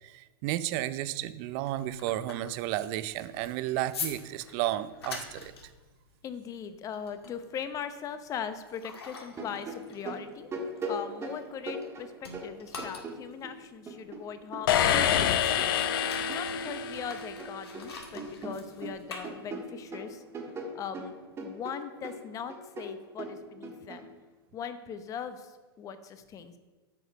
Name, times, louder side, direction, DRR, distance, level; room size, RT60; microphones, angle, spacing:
voice 1, 0.0-5.5, right 14 dB, 45° right, 14 dB, 0.5 m, -33 dB
sound 1, 1.4-11.9 12.2-19.9, left 4 dB, 85° left, 1.8 m, -45 dB
voice 2, 6.2-10.5 10.9-15.8 16.3-20.2 20.7-21.2 21.4-24.1 24.5-26.6, left 7 dB, 25° left, 11 dB, 0.7 m, -40 dB
sound 2, 9.3-13.6 13.9-16.8 17.1-17.9 18.2-24.0, right 2 dB, 20° right, 1.5 m, -40 dB
sound 3, 14.7-17.5, left 9 dB, 65° left, 0.7 m, -27 dB
8.3 x 5.0 x 6.2 m, 1.2 s
hypercardioid pair, 120°, 13 cm